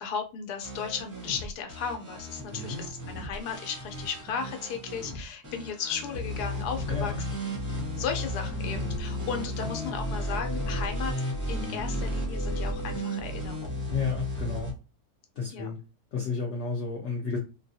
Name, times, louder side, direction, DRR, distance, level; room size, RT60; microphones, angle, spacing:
voice 1, 0.0-11.1 11.5-13.8 15.5-15.7, left 6 dB, 80° left, 5 dB, 1.2 m, -35 dB
sound 1, 0.6-14.7, equal, 20° right, 0.6 m, -34 dB
voice 2, 2.5-2.8 6.9-7.2 13.9-14.7 15.4-15.8 16.1-17.4, left 4 dB, 60° left, -1 dB, 0.8 m, -32 dB
sound 2, 7.4-13.8, left 2 dB, 60° right, 0.7 m, -43 dB
3.5 x 2.2 x 2.7 m, 0.31 s
omnidirectional pair, 1.7 m